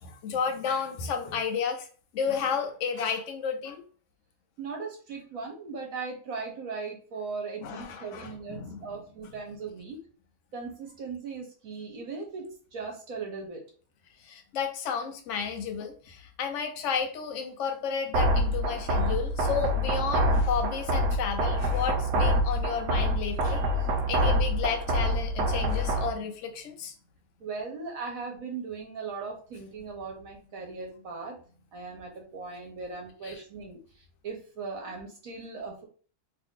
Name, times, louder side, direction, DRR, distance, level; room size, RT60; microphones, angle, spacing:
voice 1, 0.0-1.9 2.1-3.8 7.6-9.0 9.2-9.3 14.2-23.7 24.1-26.9 33.2-33.4, left 6 dB, 60° left, 5 dB, 0.8 m, -32 dB
voice 2, 4.6-10.0 10.5-13.6 27.4-31.4 31.7-35.8, right 4 dB, 60° right, 1 dB, 1.2 m, -38 dB
sound 1, 18.1-26.1, equal, 85° right, 1.2 m, -26 dB
3.0 x 2.5 x 3.6 m, 0.41 s
omnidirectional pair, 1.8 m